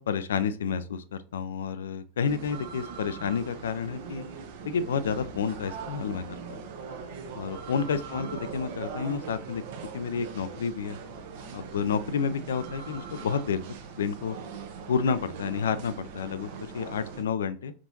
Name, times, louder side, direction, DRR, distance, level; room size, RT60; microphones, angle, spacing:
voice 1, 0.0-4.2 4.6-6.6 7.3-9.6 9.9-11.0 11.5-13.6 14.0-14.4 14.9-17.7, left 6 dB, 65° left, 13 dB, 0.4 m, -30 dB
sound 1, 2.3-17.2, right 6 dB, 50° right, 0.8 m, -41 dB
4.9 x 3.6 x 2.6 m, 0.38 s
figure-of-eight pair, 90°, 0 cm